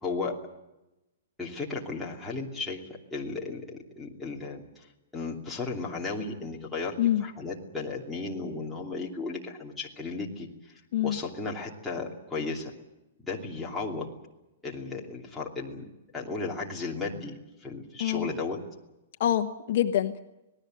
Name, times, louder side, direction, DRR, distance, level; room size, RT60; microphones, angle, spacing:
voice 1, 0.0-0.4 1.4-2.8 3.1-4.9 5.1-10.5 11.0-12.7 13.3-14.1 14.6-15.8 16.1-18.6, left 3 dB, 5° left, -4 dB, 2.9 m, -35 dB
voice 2, 19.2-20.2, left 11 dB, 50° left, 6 dB, 1.2 m, -25 dB
26.5 x 19.0 x 7.8 m, 0.96 s
hypercardioid pair, 170°, 0 cm